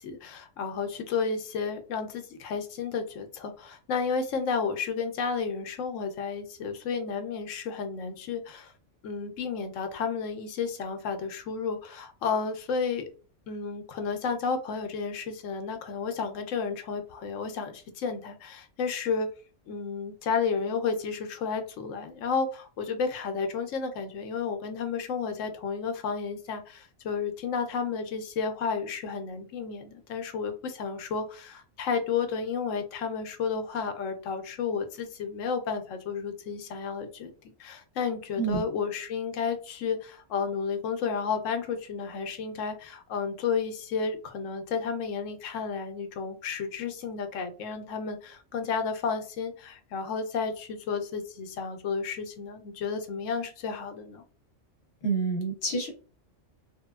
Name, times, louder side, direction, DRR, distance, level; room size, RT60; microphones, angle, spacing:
voice 1, 0.0-8.7 9.0-13.1 13.5-19.3 19.7-37.3 37.6-54.2, left 5 dB, 85° left, 7 dB, 1.0 m, -32 dB
voice 2, 55.0-55.9, right 4 dB, 60° left, 2 dB, 1.0 m, -28 dB
3.2 x 2.1 x 2.3 m, 0.36 s
omnidirectional pair, 1.3 m